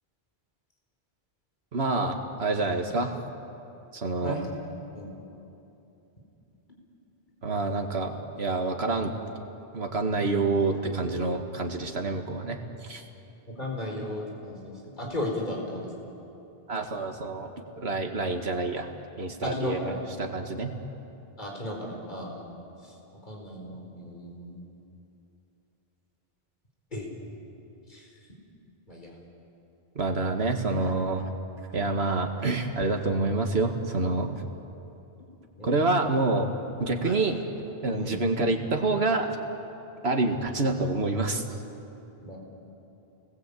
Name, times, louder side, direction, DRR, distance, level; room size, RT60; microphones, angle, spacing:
voice 1, 1.7-3.2 3.9-4.4 7.4-9.1 9.7-13.0 16.7-18.9 19.2-20.7 30.0-31.3 31.7-34.4 35.6-36.5 36.8-37.4 37.8-39.3 40.0-41.4, right 3 dB, 85° right, 4 dB, 2.1 m, -27 dB
voice 2, 13.6-15.9 19.4-19.9 21.4-22.5 22.8-22.9 23.3-24.6 26.9-27.3 27.9-28.1 28.9-29.1 35.6-35.7 37.0-37.2 37.9-38.2 42.2-42.4, left 1 dB, 50° left, -1 dB, 4.6 m, -35 dB
29.0 x 20.0 x 8.5 m, 2.9 s
omnidirectional pair, 1.0 m